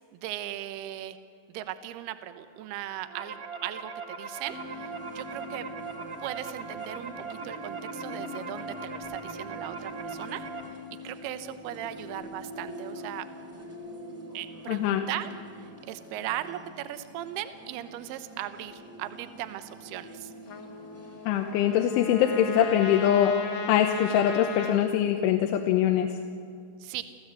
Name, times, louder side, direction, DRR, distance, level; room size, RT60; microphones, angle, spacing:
voice 1, 0.1-1.2 1.5-5.7 6.2-10.4 11.0-13.3 14.3-20.3 26.8-27.0, right 12 dB, 70° right, 10 dB, 2.6 m, -38 dB
sound 1, 2.8-10.6, right 5 dB, 45° right, 2.0 m, -40 dB
sound 2, 4.4-23.0, equal, 5° right, 1.2 m, -44 dB
voice 2, 14.7-15.0 21.3-23.4 23.7-26.2, left 10 dB, 80° left, 5 dB, 3.3 m, -23 dB
Trumpet, 20.5-24.8, left 5 dB, 55° left, 2.0 m, -37 dB
29.0 x 15.0 x 8.3 m, 2.4 s
omnidirectional pair, 5.5 m